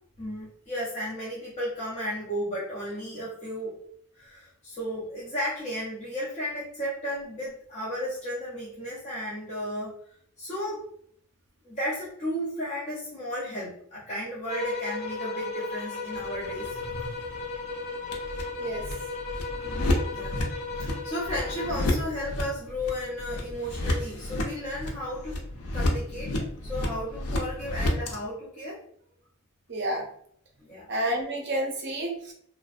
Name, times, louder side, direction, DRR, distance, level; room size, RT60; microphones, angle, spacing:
voice 1, 0.2-3.7 4.2-9.9 10.4-10.9 11.6-16.8 19.5-19.6 20.0-20.4 20.7-25.4 25.7-28.8 30.6-30.9, equal, 30° left, -8 dB, 0.6 m, -34 dB
sound 1, 14.5-21.9, left 4 dB, 70° left, 0.9 m, -35 dB
sound 2, 16.1-28.2, left 1 dB, 85° left, 0.5 m, -32 dB
voice 2, 29.7-30.1 30.9-32.3, right 1 dB, 50° right, 1 dB, 0.5 m, -29 dB
2.5 x 2.0 x 2.4 m, 0.65 s
head